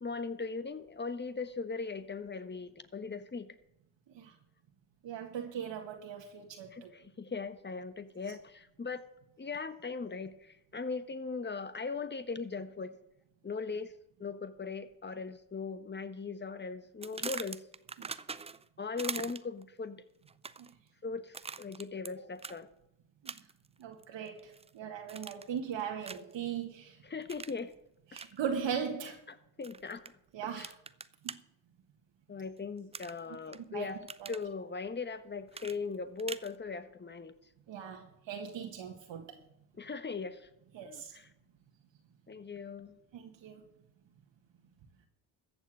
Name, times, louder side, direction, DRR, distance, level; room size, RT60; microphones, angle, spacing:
voice 1, 0.0-3.6 6.7-9.1 9.4-13.0 13.4-13.9 14.2-17.7 18.8-20.0 21.0-22.7 27.0-27.7 29.3-30.0 30.6-30.7 32.3-34.0 34.3-37.4 39.8-40.5 40.8-41.3 42.3-43.0, left 4 dB, 20° left, 12 dB, 1.3 m, -39 dB
voice 2, 5.0-6.9 18.0-18.2 20.6-20.7 23.2-23.3 23.8-27.0 28.1-29.2 30.3-30.7 31.2-31.4 33.7-33.9 34.2-34.3 37.7-39.3 40.7-41.1 43.1-43.6, right 7 dB, 60° right, 2 dB, 1.7 m, -39 dB
sound 1, 17.0-18.7 19.0-19.6 20.3-20.7 21.3-22.1 22.4-22.6 23.3-23.7 24.0-24.7 25.1-25.6 26.0-26.4 27.3-27.6 28.1-28.3 29.6-30.1 30.6-31.4 32.9-33.6 33.9-34.5 35.5-36.5, right 5 dB, 15° right, 0.4 m, -42 dB
14.0 x 7.1 x 7.6 m, 0.79 s
supercardioid pair, 70°, 49 cm